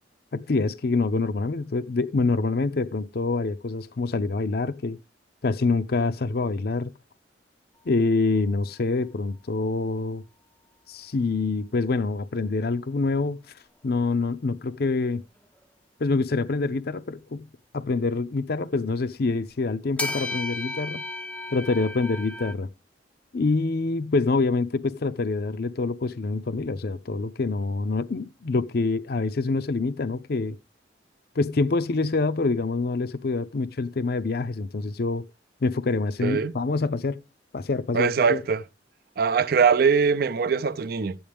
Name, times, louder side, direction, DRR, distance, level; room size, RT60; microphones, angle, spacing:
voice 1, 0.3-5.0 5.4-6.9 7.9-10.2 10.9-13.4 13.8-15.2 16.0-17.5 17.7-21.0 21.5-22.7 23.3-30.6 31.4-35.3 35.6-37.2 37.5-38.4, left 3 dB, 60° left, 0.5 m, -26 dB
sound 1, 11.2-11.3 16.5-16.6 18.4-18.5 20.0-22.5, left 2 dB, 10° left, 0.5 m, -33 dB
voice 2, 36.2-36.5 37.9-38.6 39.2-41.2, right 6 dB, 55° right, 0.5 m, -22 dB
12.5 x 8.7 x 3.5 m
head